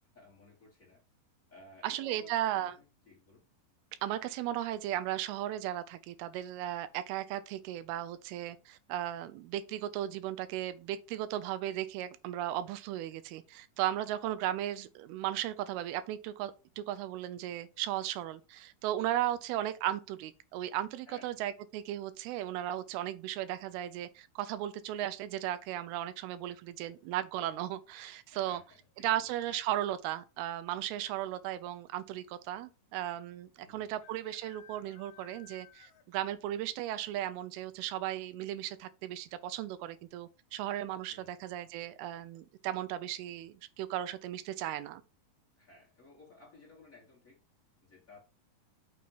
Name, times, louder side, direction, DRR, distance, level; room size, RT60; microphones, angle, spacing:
voice 1, 0.1-1.0 1.5-3.5 19.1-19.4 21.1-21.4 26.5-26.9 28.3-29.5 33.6-34.0 41.1-41.5 45.6-47.4 47.8-48.2, left 3 dB, 60° left, 0.8 m, -58 dB
voice 2, 1.8-2.8 4.0-28.6 29.0-45.0, right 13 dB, 90° right, 2.5 m, -36 dB
sound 1, 26.4-26.9 28.7-29.1 29.4-29.5 29.7-30.2 31.0-31.1 31.3-31.4 33.0-33.1 34.0-36.3 36.6-36.7 37.2-37.3 37.8-37.9, left 10 dB, 90° left, 1.6 m, -59 dB
6.2 x 2.9 x 5.4 m
omnidirectional pair, 4.4 m